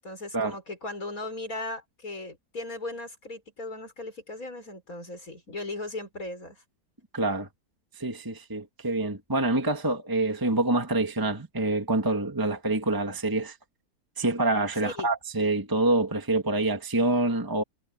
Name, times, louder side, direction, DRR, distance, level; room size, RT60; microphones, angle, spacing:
voice 1, 0.0-6.6 14.8-15.1, left 2 dB, 65° left, 5.7 m, -37 dB
voice 2, 7.1-7.5 8.0-13.6 14.2-17.6, right 2 dB, 15° right, 1.7 m, -26 dB
omnidirectional pair, 1.6 m